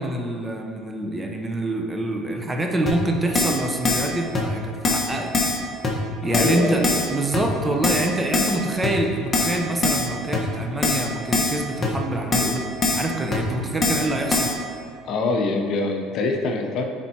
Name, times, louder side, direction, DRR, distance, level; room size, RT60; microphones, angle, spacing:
voice 1, 0.0-5.3 6.2-6.8 7.1-12.6 12.9-14.5, right 1 dB, 15° right, 2 dB, 0.7 m, -26 dB
Keyboard (musical), 2.9-3.0 3.3-3.6 3.8-4.1 4.3-4.4 4.8-5.1 5.3-5.6 5.8-5.9 6.3-6.6 6.8-7.1 7.3-7.4 7.8-8.1 8.3-8.6 8.8-8.9 9.3-9.6 9.8-10.1 10.3-10.4 10.8-11.1 11.3-11.6 11.8-11.9 12.3-12.5 12.8-13.0 13.3-13.4 13.8-14.0 14.3-14.5, left 3 dB, 25° left, 1.2 m, -22 dB
voice 2, 6.3-6.9 15.0-16.8, left 3 dB, 60° left, 3 dB, 0.7 m, -24 dB
9.3 x 4.4 x 2.9 m, 2.3 s
supercardioid pair, 90°, 0 cm